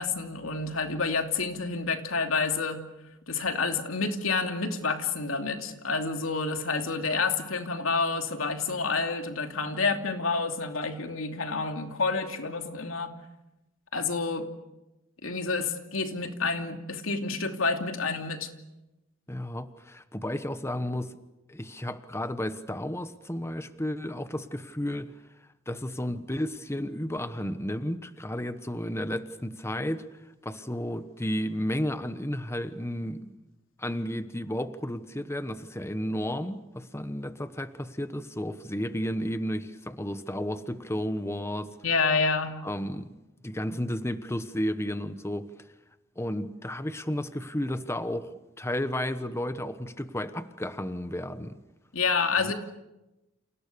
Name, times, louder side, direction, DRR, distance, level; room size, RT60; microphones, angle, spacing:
voice 1, 0.0-2.8 3.3-13.1 13.9-14.5 15.2-18.5 41.8-42.6 51.9-52.5, left 4 dB, 85° left, 5 dB, 2.8 m, -29 dB
voice 2, 19.3-21.1 21.5-25.1 25.7-30.1 30.4-33.4 33.8-41.8 42.6-43.1 43.4-45.5 46.2-48.3 48.6-51.6 52.4-52.5, left 1 dB, 15° left, 11 dB, 1.1 m, -32 dB
29.5 x 28.5 x 6.8 m, 0.97 s
head